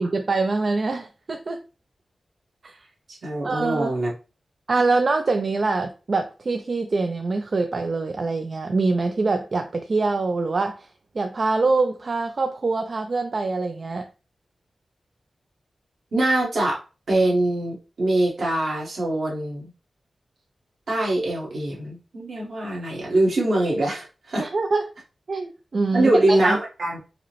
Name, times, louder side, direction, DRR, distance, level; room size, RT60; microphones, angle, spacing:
voice 1, 0.0-1.6 2.6-2.8 3.4-3.9 4.7-10.9 11.2-14.1 24.4-24.9 25.3-26.1 26.4-26.6, right 3 dB, 45° right, 6 dB, 0.3 m, -24 dB
voice 2, 3.2-4.1 16.1-16.8 17.1-19.7 20.9-24.5 25.9-27.0, right 1 dB, 65° right, -3 dB, 1.4 m, -23 dB
4.8 x 2.0 x 3.0 m, 0.33 s
wide cardioid pair, 160°, 0 cm